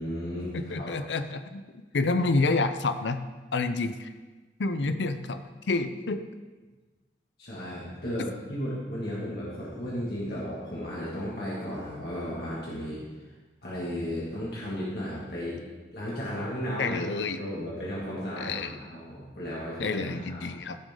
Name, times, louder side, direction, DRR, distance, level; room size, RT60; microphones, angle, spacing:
voice 1, 0.0-0.9 7.4-13.0 13.6-15.6 15.9-20.0 20.3-20.5, equal, 60° left, -7 dB, 2.4 m, -34 dB
voice 2, 0.5-1.6 1.9-3.2 3.5-4.1 4.6-6.2 16.8-17.4 18.4-18.7 19.8-20.8, left 3 dB, 85° left, 9 dB, 0.6 m, -28 dB
15.5 x 6.3 x 3.8 m, 1.3 s
head